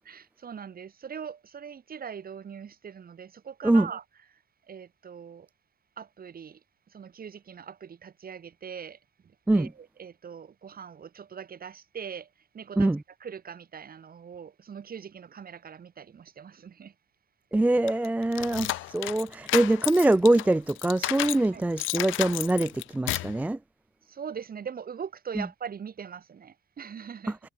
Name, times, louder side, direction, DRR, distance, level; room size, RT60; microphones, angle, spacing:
voice 1, 0.1-4.0 4.7-5.5 6.0-6.6 6.9-9.0 9.5-12.3 12.5-13.0 13.2-16.9 21.4-21.6 24.1-27.4, right 7 dB, 50° right, 3.5 m, -41 dB
voice 2, 17.5-23.6, right 2 dB, 10° right, 0.3 m, -23 dB
sound 1, 17.9-21.5 21.8-23.4, left 18 dB, 90° left, 0.5 m, -32 dB
cardioid pair, 90°, 20 cm